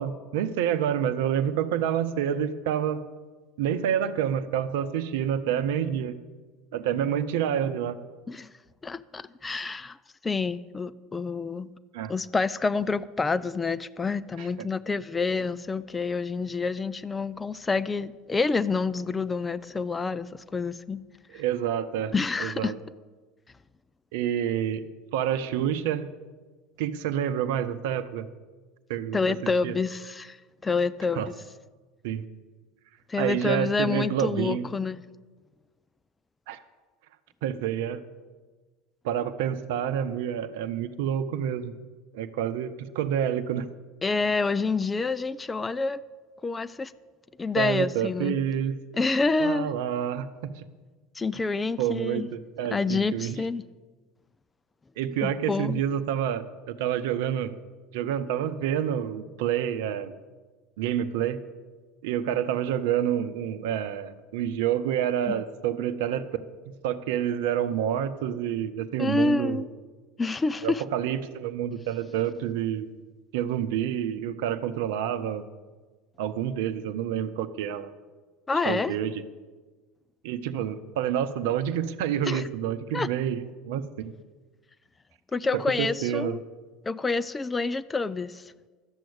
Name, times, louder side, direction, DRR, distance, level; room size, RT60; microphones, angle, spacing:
voice 1, 0.0-3.0 3.6-6.1 6.7-8.0 11.9-12.1 14.4-14.7 21.3-22.1 22.4-22.8 24.1-24.9 25.1-26.1 26.8-28.3 28.9-29.2 29.6-29.8 31.2-31.3 32.0-32.3 33.2-34.7 36.5-36.6 37.4-38.0 39.0-41.7 42.1-43.6 47.6-48.7 49.4-50.6 51.8-53.4 55.0-57.5 57.9-60.1 60.8-61.4 62.0-66.3 66.8-69.6 70.6-72.9 73.3-75.4 76.2-77.9 78.7-79.2 80.2-84.1 85.5-86.4, right 9 dB, 65° right, 11 dB, 0.8 m, -28 dB
voice 2, 8.8-10.0 10.2-11.7 12.1-21.0 22.1-22.7 29.1-30.4 30.6-31.3 33.1-35.0 44.0-46.0 46.4-46.9 47.4-48.4 48.9-49.7 51.2-52.3 52.7-53.6 55.2-55.8 65.3-65.4 69.0-69.7 70.2-70.8 78.5-79.0 82.3-82.5 82.9-83.1 85.3-86.4 86.8-88.5, left 4 dB, 20° left, 15 dB, 0.5 m, -28 dB
12.5 x 7.6 x 8.6 m, 1.4 s
figure-of-eight pair, 70°, 0 cm